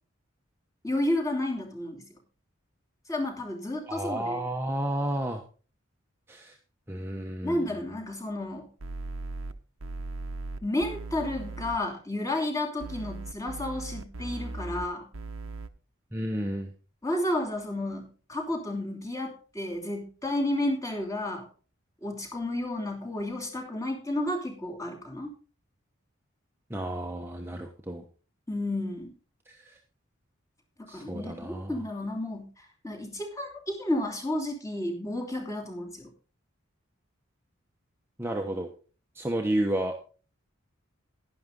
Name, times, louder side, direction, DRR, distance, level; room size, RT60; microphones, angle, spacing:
voice 1, 0.8-2.1 3.1-4.4 7.4-8.7 10.6-15.1 17.0-21.5 22.0-25.3 28.5-29.1 30.8-36.1, left 1 dB, 15° left, 1 dB, 2.8 m, -32 dB
voice 2, 3.9-5.4 6.3-6.5 6.9-7.7 16.1-16.7 26.7-28.0 29.5-29.8 30.9-31.8 38.2-38.7 39.1-39.9, right 1 dB, 10° right, 2 dB, 1.1 m, -31 dB
sound 1, 8.8-9.5 9.8-11.8 12.8-14.9 15.1-15.7, right 3 dB, 85° right, 1.0 m, -38 dB
11.5 x 11.0 x 3.8 m, 0.36 s
head